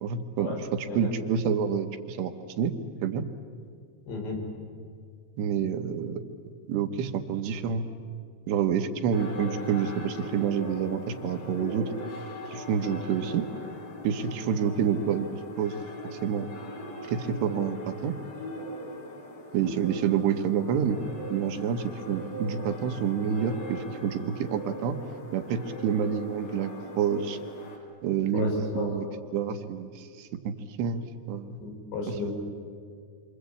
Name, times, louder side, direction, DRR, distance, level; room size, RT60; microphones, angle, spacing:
voice 1, 0.0-2.7 3.0-3.3 5.4-6.2 6.7-7.8 8.5-11.9 12.5-13.5 14.0-15.3 15.6-15.7 16.2-16.5 17.0-18.1 19.5-21.0 21.3-25.0 25.3-27.4 28.0-29.1 29.3-31.6 32.1-32.2, right 7 dB, 80° right, 6 dB, 3.3 m, -28 dB
voice 2, 4.1-4.4 28.3-29.2 31.6-32.3, left 3 dB, 90° left, 0 dB, 7.4 m, -33 dB
sound 1, 9.1-27.8, left 1 dB, 60° left, 5.2 m, -40 dB
27.5 x 25.5 x 8.5 m, 2.1 s
omnidirectional pair, 5.0 m